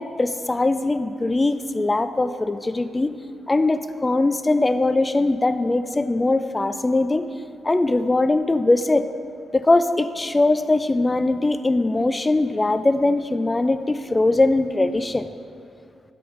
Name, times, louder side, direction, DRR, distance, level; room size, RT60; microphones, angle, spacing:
voice 1, 0.0-3.1 3.5-7.2 7.6-9.1 9.5-15.3, left 2 dB, 25° left, 11 dB, 0.3 m, -21 dB
8.6 x 8.5 x 2.5 m, 2.5 s
supercardioid pair, 50°, 0 cm